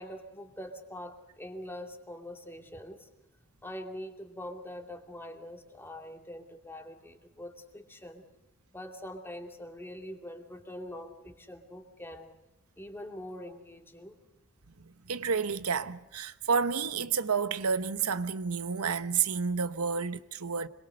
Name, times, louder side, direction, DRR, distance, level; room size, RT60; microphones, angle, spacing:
voice 1, 0.0-3.1 3.6-8.2 8.7-12.3 12.8-14.2, left 1 dB, 10° left, 2.5 m, -44 dB
voice 2, 14.8-20.7, right 5 dB, 90° right, 1.0 m, -30 dB
26.0 x 22.5 x 6.6 m
head